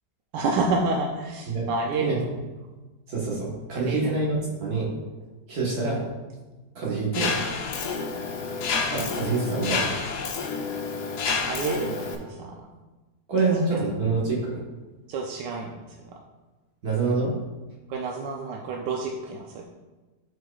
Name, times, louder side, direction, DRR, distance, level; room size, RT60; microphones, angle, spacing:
voice 1, 0.3-2.2 3.7-4.1 11.5-12.6 13.7-13.8 15.1-16.0 17.9-19.6, right 3 dB, 85° right, 0 dB, 1.2 m, -29 dB
voice 2, 3.1-4.9 5.5-6.0 6.8-7.3 8.9-10.0 13.3-14.6 16.8-17.3, right 3 dB, 65° right, -5 dB, 1.8 m, -26 dB
Mechanisms, 7.1-12.1, left 5 dB, 75° left, 1.3 m, -29 dB
11.0 x 4.5 x 2.3 m, 1.2 s
omnidirectional pair, 1.8 m